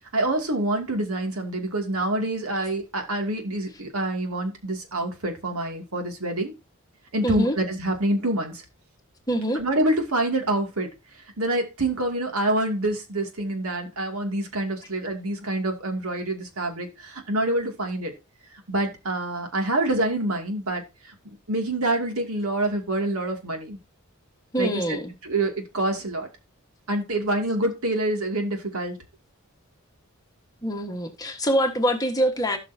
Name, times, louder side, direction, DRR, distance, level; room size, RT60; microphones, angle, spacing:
voice 1, 0.1-6.5 7.1-8.6 9.5-10.9 11.4-18.1 18.7-21.1 21.5-23.8 24.6-26.3 26.9-29.0, right 1 dB, 85° right, 2.5 m, -26 dB
voice 2, 7.2-7.6 9.3-9.6 24.5-25.1 30.6-32.6, equal, 15° left, 1.5 m, -24 dB
16.5 x 6.0 x 2.8 m
head